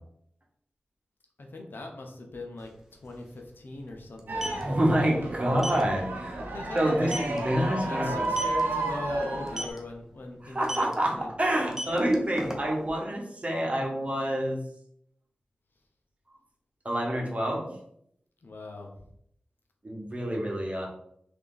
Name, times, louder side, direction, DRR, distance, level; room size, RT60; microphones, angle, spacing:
voice 1, 1.4-4.6 6.4-7.4 7.9-10.9 11.1-11.3 18.4-18.9, left 2 dB, 75° left, 2 dB, 0.7 m, -40 dB
sound 1, 2.6-2.7 2.9-3.1 4.1-4.6 5.6-5.8 6.3-6.4 6.8-6.9 7.1-7.4 8.2-8.6 9.5-9.8 10.6-10.9 11.6-12.9, equal, 15° right, 0.8 m, -34 dB
sound 2, 4.3-9.7, right 2 dB, 85° right, 0.6 m, -32 dB
voice 2, 4.6-6.4 6.7-8.3 10.4-14.6 16.8-17.7 19.8-20.9, right 1 dB, 40° right, -1 dB, 1.2 m, -27 dB
3.4 x 2.8 x 3.9 m, 0.71 s
cardioid pair, 45°, 4 cm